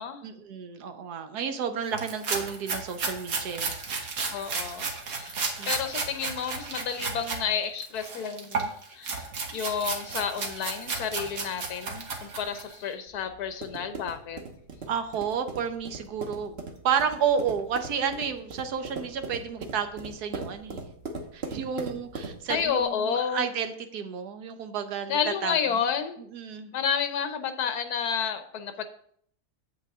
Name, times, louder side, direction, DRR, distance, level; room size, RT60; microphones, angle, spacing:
voice 1, 0.2-3.7 5.6-5.7 14.9-16.6 16.8-20.8 21.3-25.6 26.3-26.7, right 7 dB, 85° right, 8 dB, 1.4 m, -31 dB
sound 1, 1.9-7.4 7.8-12.8, right 4 dB, 70° right, 1.6 m, -33 dB
voice 2, 4.3-5.4 5.7-14.4 22.5-23.5 25.1-26.2 26.7-28.8, left 7 dB, 80° left, 8 dB, 1.3 m, -30 dB
sound 2, 13.1-22.8, right 3 dB, 45° right, 1.2 m, -40 dB
8.4 x 7.7 x 3.6 m, 0.64 s
omnidirectional pair, 1.6 m